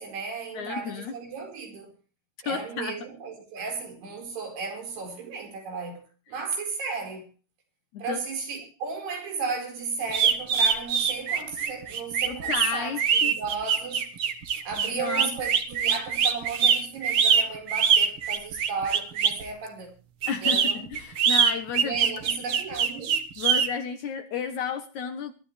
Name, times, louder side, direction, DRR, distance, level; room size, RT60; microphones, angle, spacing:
voice 1, 0.0-1.9 2.4-6.0 6.3-7.3 8.0-14.1 14.6-19.9 20.4-20.9 21.8-23.1, right 5 dB, 85° right, 6.8 m, -34 dB
voice 2, 0.5-1.1 2.4-3.0 7.9-8.2 12.3-13.3 14.9-15.3 20.3-22.0 23.4-25.3, left 6 dB, 65° left, 2.0 m, -32 dB
sound 1, 10.1-19.4 20.2-23.7, right 7 dB, 60° right, 1.4 m, -23 dB
22.5 x 13.0 x 3.3 m
omnidirectional pair, 4.5 m